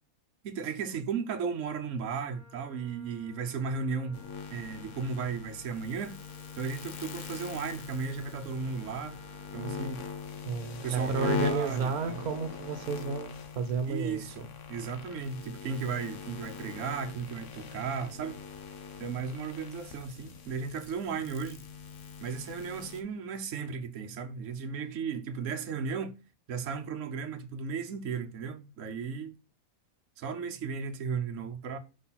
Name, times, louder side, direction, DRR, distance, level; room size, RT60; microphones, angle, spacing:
voice 1, 0.4-4.2 4.5-6.2 6.6-9.2 9.5-10.0 10.8-12.2 13.9-14.4 14.7-18.4 19.0-21.6 22.2-26.1 26.5-29.3 30.2-31.8, right 5 dB, 60° right, 1.2 m, -35 dB
Wind instrument woodwind instrument, 2.2-10.2, left 2 dB, 5° right, 2.1 m, -59 dB
sound 1, 4.1-23.0, left 6 dB, 60° left, 1.2 m, -41 dB
voice 2, 10.4-14.5, right 5 dB, 85° right, 1.4 m, -32 dB
5.8 x 4.1 x 5.7 m
omnidirectional pair, 1.5 m